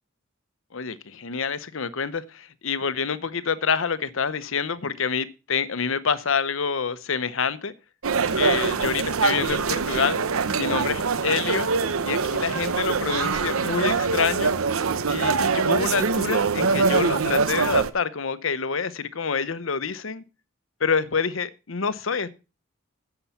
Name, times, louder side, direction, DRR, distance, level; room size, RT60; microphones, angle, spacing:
voice 1, 0.7-7.7 8.3-10.2 10.5-11.7 12.0-14.6 15.1-20.2 20.8-22.3, left 5 dB, 70° left, 0.8 m, -27 dB
sound 1, 8.0-17.9, right 4 dB, 85° right, 0.8 m, -24 dB
10.0 x 6.9 x 5.7 m
head